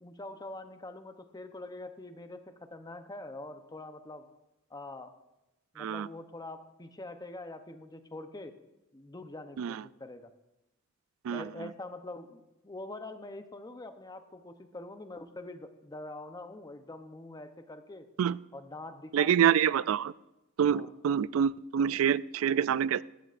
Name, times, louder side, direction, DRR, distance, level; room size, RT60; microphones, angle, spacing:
voice 1, 0.0-4.3 4.7-5.1 5.7-8.5 8.9-10.3 11.3-18.1 18.5-19.7 20.7-20.9, left 2 dB, 20° left, 8 dB, 0.7 m, -44 dB
voice 2, 5.8-6.1 9.6-9.8 11.2-11.5 18.2-18.4 19.1-20.1 20.6-23.0, right 8 dB, 85° right, 19 dB, 0.3 m, -26 dB
15.5 x 13.5 x 2.5 m, 0.95 s
head